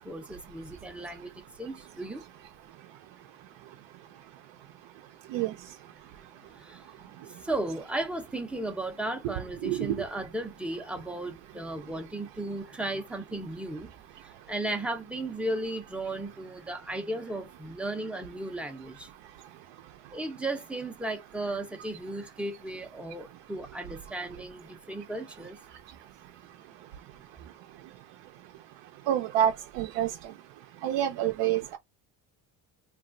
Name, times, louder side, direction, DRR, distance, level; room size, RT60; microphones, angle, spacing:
voice 1, 0.0-1.3 1.6-2.2 6.7-6.8 7.5-13.9 14.5-19.1 20.1-25.6, right 2 dB, 5° right, 0.4 m, -35 dB
voice 2, 9.6-9.9 29.1-30.1 30.8-31.8, right 11 dB, 80° right, 0.5 m, -27 dB
2.9 x 2.4 x 2.4 m
cardioid pair, 120°, 43 cm